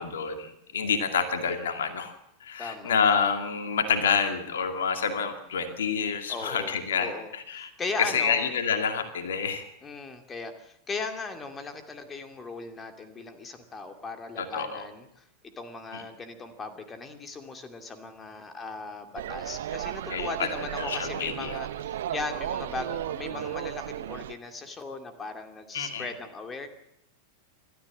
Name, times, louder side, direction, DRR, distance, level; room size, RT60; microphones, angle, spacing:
voice 1, 0.0-2.1 2.4-7.7 8.0-9.6 14.4-14.9 15.9-16.0 20.1-21.6 25.7-26.1, left 6 dB, 65° left, 7 dB, 2.4 m, -28 dB
voice 2, 2.6-2.9 6.3-8.5 9.8-26.7, left 3 dB, 20° left, 6 dB, 2.5 m, -38 dB
sound 1, 19.2-24.3, right 11 dB, 60° right, 0.9 m, -34 dB
27.5 x 13.5 x 7.4 m, 0.80 s
figure-of-eight pair, 90°, 0 cm